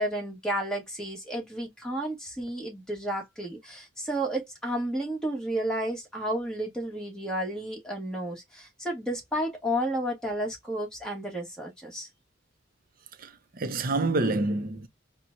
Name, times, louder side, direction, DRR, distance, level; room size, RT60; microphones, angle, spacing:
voice 1, 0.0-12.1, right 1 dB, 5° left, 1.4 m, -32 dB
voice 2, 13.2-14.9, right 2 dB, 45° right, 0.6 m, -28 dB
4.3 x 2.2 x 2.6 m
head